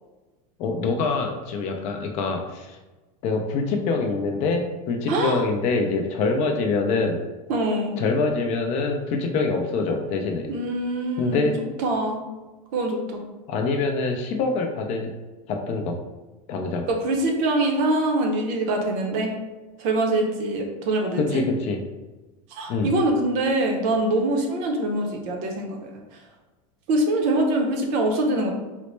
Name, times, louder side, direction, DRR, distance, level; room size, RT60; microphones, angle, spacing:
voice 1, 0.6-2.8 3.2-7.2 8.0-10.5 11.2-11.5 13.5-15.1 15.5-15.9 16.5-16.9 21.2-21.8 22.7-22.9, left 4 dB, 35° left, 3 dB, 0.4 m, -25 dB
voice 2, 5.1-5.4 7.5-8.0 10.5-11.5 11.8-12.2 12.7-13.2 16.9-19.3 19.8-21.4 22.5-26.2 26.9-28.5, right 1 dB, 45° right, 2 dB, 0.6 m, -24 dB
4.0 x 2.1 x 3.1 m, 1.2 s
supercardioid pair, 155°, 19 cm